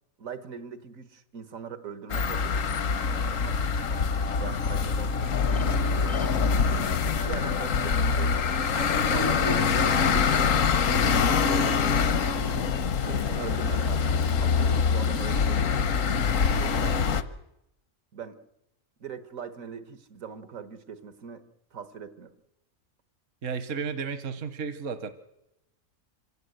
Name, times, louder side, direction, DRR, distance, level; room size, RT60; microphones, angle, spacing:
voice 1, 0.2-6.7 7.2-8.3 8.7-9.7 10.0-12.8 13.1-16.3 16.6-17.0 18.1-18.4 19.0-21.5 21.7-22.4, right 6 dB, 90° right, 12 dB, 1.8 m, -42 dB
sound 1, 2.1-17.2, left 5 dB, 75° left, 1.4 m, -25 dB
sound 2, 2.3-10.8, left 2 dB, 10° left, 0.4 m, -41 dB
voice 2, 23.4-25.1, right 5 dB, 70° right, 11 dB, 1.4 m, -33 dB
25.5 x 16.5 x 8.0 m, 0.88 s
omnidirectional pair, 1.4 m